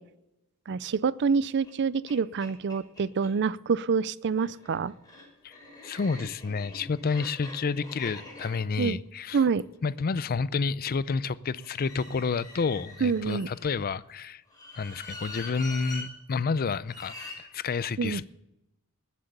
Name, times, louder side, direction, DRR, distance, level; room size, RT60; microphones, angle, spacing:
voice 1, 0.7-4.9 8.8-9.0 9.3-9.6 13.0-13.5 18.0-18.2, right 5 dB, 55° right, 19 dB, 0.4 m, -26 dB
sound 1, 1.6-1.7 2.1-2.2 2.4-3.3 4.2-10.4 11.6-13.8 14.5-16.1 16.8-17.4, left 2 dB, 20° left, 5.6 m, -44 dB
voice 2, 5.8-9.4 9.8-14.4 14.8-18.3, left 4 dB, 45° left, 18 dB, 0.5 m, -30 dB
20.0 x 7.6 x 6.7 m, 0.92 s
head